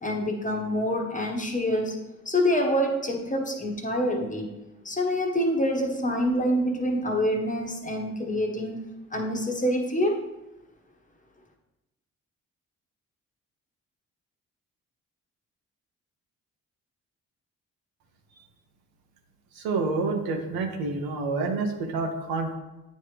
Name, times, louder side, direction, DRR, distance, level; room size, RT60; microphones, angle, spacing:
voice 1, 0.0-4.6 4.8-8.8 9.1-10.3, equal, 20° left, 1 dB, 1.3 m, -26 dB
voice 2, 19.6-22.5, right 3 dB, 75° right, 3 dB, 0.9 m, -28 dB
8.9 x 3.1 x 3.3 m, 0.97 s
hypercardioid pair, 50°, 36 cm